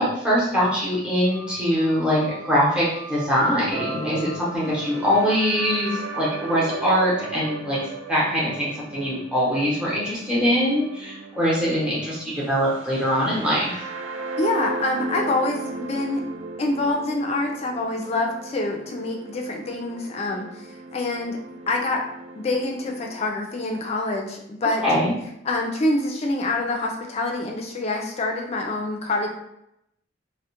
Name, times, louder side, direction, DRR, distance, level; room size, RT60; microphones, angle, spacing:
voice 1, 0.0-7.8 8.1-13.8 24.8-25.1, equal, 5° right, -8 dB, 0.8 m, -23 dB
Wind instrument woodwind instrument, 1.3-4.9, right 1 dB, 55° right, 0.7 m, -43 dB
sound 1, 3.7-23.3, right 3 dB, 80° right, 0.3 m, -36 dB
voice 2, 14.4-16.2 16.6-21.4 21.7-22.0 22.4-24.8 25.4-29.3, left 2 dB, 35° left, 2 dB, 0.3 m, -26 dB
2.3 x 2.1 x 2.8 m, 0.80 s
head